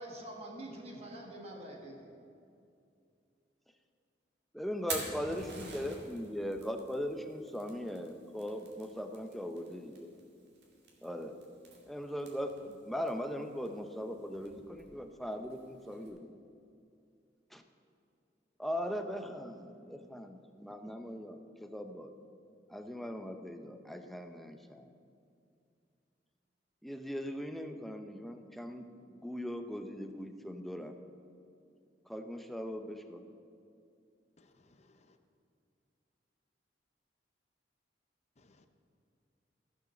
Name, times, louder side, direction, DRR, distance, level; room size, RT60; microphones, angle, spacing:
voice 1, 0.0-2.1, right 1 dB, 35° right, 0 dB, 1.6 m, -45 dB
voice 2, 4.5-10.1 11.0-11.4 11.9-16.3 17.5-17.6 18.6-22.1 22.7-24.9 26.8-31.0 32.1-33.3, equal, ahead, 5 dB, 0.6 m, -40 dB
Fire, 4.7-16.1, right 3 dB, 70° right, 2.3 m, -49 dB
voice 3, 34.4-35.2 38.4-38.7, left 2 dB, 40° left, 7 dB, 0.7 m, -65 dB
15.0 x 6.4 x 6.6 m, 2.4 s
head